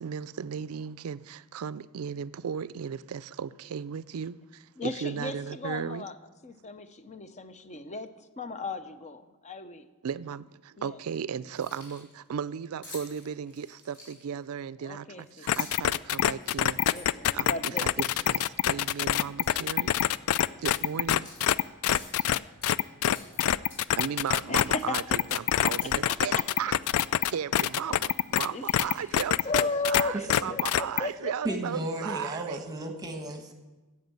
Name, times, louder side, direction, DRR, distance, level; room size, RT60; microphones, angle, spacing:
voice 1, 0.0-6.1 10.0-16.8 17.3-20.0 20.6-21.3 24.0-27.0 27.3-32.6, right 7 dB, 70° right, 0.4 m, -36 dB
voice 2, 4.8-6.1 6.4-8.1 8.4-9.8 10.8-10.9 14.8-15.5 16.9-17.8 24.5-25.0 25.8-25.9 28.5-28.6 29.4-31.6, left 3 dB, 30° left, 0.7 m, -35 dB
Keys jangling, 11.4-12.1 12.8-14.4 15.2-15.9 16.4-17.9 18.4-18.6 18.9-19.5 19.9-20.1 20.6-21.5 21.9-22.7 23.1-24.0 24.2-24.5 24.8-26.0 26.3-26.4 26.8-27.0 27.6-27.8 28.1-29.9, left 2 dB, 55° left, 4.0 m, -50 dB
sound 1, 15.5-30.0 30.3-31.0, left 11 dB, 75° left, 0.3 m, -25 dB
voice 3, 31.4-33.5, right 1 dB, 15° right, 1.3 m, -34 dB
11.0 x 7.8 x 7.5 m
head